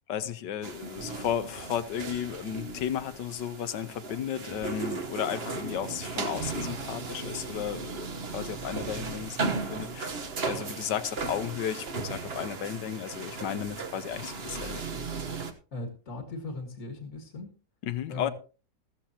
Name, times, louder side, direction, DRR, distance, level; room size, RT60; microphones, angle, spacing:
voice 1, 0.1-14.8 17.8-18.3, left 9 dB, 90° left, 1.5 m, -34 dB
sound 1, 0.6-15.5, right 4 dB, 40° right, 1.3 m, -36 dB
voice 2, 15.7-17.5 18.1-18.3, left 2 dB, 50° left, 2.1 m, -38 dB
15.0 x 14.0 x 2.9 m
omnidirectional pair, 1.8 m